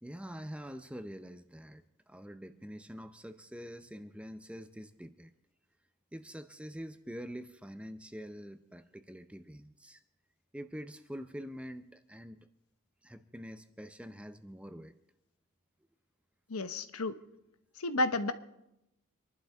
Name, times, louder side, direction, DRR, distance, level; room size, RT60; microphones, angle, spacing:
voice 1, 0.0-5.3 6.1-10.0 10.5-12.5 13.0-14.9, equal, 5° right, 9 dB, 0.6 m, -45 dB
voice 2, 16.5-17.2 17.8-18.3, left 2 dB, 90° left, 10 dB, 1.0 m, -31 dB
25.5 x 11.5 x 3.6 m, 0.87 s
head